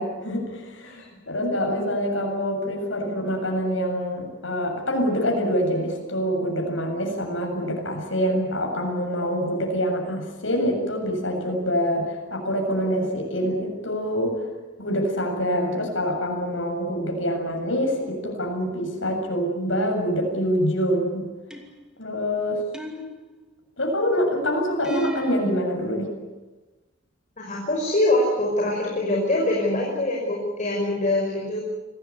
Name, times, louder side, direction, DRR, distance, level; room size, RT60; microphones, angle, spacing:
voice 1, 0.0-14.5 14.8-21.2 22.0-22.6 23.8-26.1, equal, 80° left, 2 dB, 7.5 m, -25 dB
sound 1, 21.5-22.0 22.7-23.6 24.8-25.6, equal, 5° right, 2.6 m, -34 dB
voice 2, 27.4-31.6, left 1 dB, 40° left, -2 dB, 5.9 m, -24 dB
26.0 x 18.0 x 10.0 m, 1.1 s
head